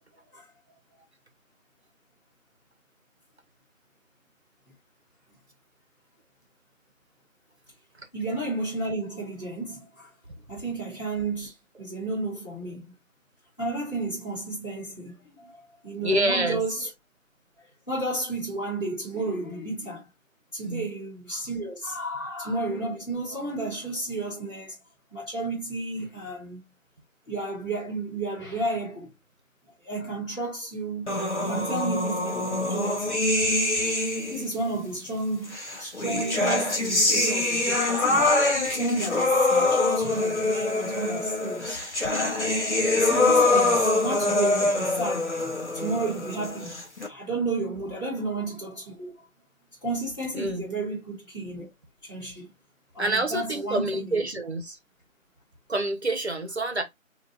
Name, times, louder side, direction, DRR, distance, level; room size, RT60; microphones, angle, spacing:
voice 1, 0.1-0.5 8.1-10.1 10.5-12.9 13.6-16.9 17.6-20.1 20.5-24.8 25.1-26.6 27.3-29.1 29.8-31.1 31.4-33.1 34.3-38.3 38.7-41.8 42.9-46.8 47.0-49.3 49.8-51.7 52.0-52.5 52.9-54.2, right 2 dB, 15° left, 1.8 m, -32 dB
voice 2, 16.0-16.6 20.6-20.8 50.3-50.6 53.0-54.8 55.7-56.8, right 1 dB, 50° right, 1.0 m, -27 dB
sound 1, 31.1-34.5 35.5-47.1, left 2 dB, 55° left, 1.5 m, -24 dB
5.6 x 2.6 x 2.7 m
figure-of-eight pair, 170°, 41 cm